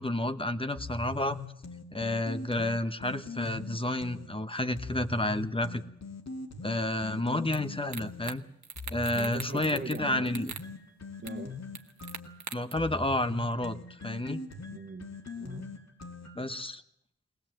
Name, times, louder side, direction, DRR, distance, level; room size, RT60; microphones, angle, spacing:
voice 1, 0.0-1.4 1.9-5.8 6.6-8.4 8.9-10.5 12.5-13.8 14.0-14.4 16.3-16.8, left 1 dB, 20° left, 10 dB, 1.2 m, -30 dB
sound 1, 0.8-4.3 4.8-8.3 8.8-16.6, left 3 dB, 65° left, 2.6 m, -41 dB
sound 2, 7.5-7.6 7.9-8.4 8.6-10.0 10.3-10.7 11.3-11.4 11.8-12.7, right 6 dB, 75° right, 1.3 m, -41 dB
voice 2, 9.1-10.4 11.2-11.6 14.7-15.1 15.3-15.7, right 3 dB, 40° right, 4 dB, 1.6 m, -41 dB
22.0 x 18.5 x 7.8 m, 0.77 s
cardioid pair, 60°, 29 cm